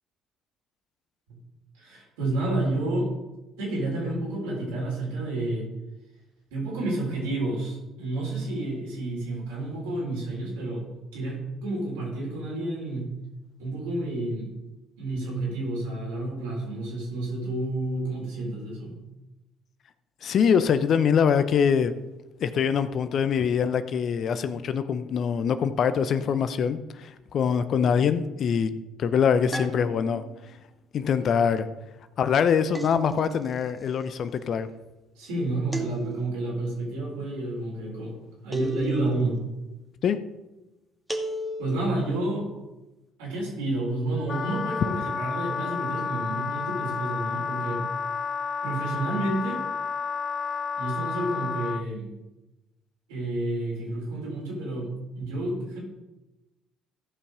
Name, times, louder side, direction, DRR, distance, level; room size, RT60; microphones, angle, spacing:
voice 1, 1.8-3.1 3.6-5.7 6.5-10.9 11.1-13.1 13.6-14.5 15.0-19.0 35.1-38.2 38.4-39.4 41.6-42.5 43.2-47.9 48.6-49.7 50.8-52.2 53.1-55.8, right 2 dB, 80° right, -3 dB, 4.2 m, -30 dB
voice 2, 20.2-21.9 22.4-28.7 29.0-30.2 30.9-31.7 32.2-34.7 40.0-40.2, left 7 dB, 55° left, 12 dB, 0.8 m, -24 dB
sound 1, 29.5-30.4 32.7-33.6 35.7-36.6 38.5-39.4 41.1-42.0, right 1 dB, 5° right, 1.8 m, -34 dB
Wind instrument woodwind instrument, 44.3-51.8, left 6 dB, 40° left, 0.3 m, -31 dB
15.0 x 5.5 x 5.1 m, 1.0 s
hypercardioid pair, 55°, 0 cm